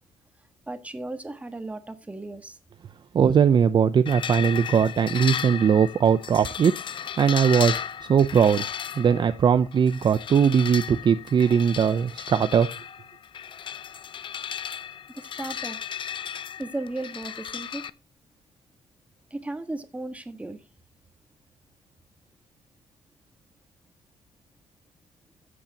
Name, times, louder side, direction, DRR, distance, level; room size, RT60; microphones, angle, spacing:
voice 1, 0.7-2.6 15.1-15.8 16.6-17.9 19.3-20.6, right 2 dB, 10° right, 1.6 m, -35 dB
voice 2, 3.1-6.7 7.2-7.8 8.1-8.6 9.0-12.7, right 7 dB, 40° right, 0.6 m, -20 dB
sound 1, 4.1-17.9, left 8 dB, 45° left, 0.7 m, -35 dB
13.5 x 8.6 x 2.9 m
cardioid pair, 135°, 12 cm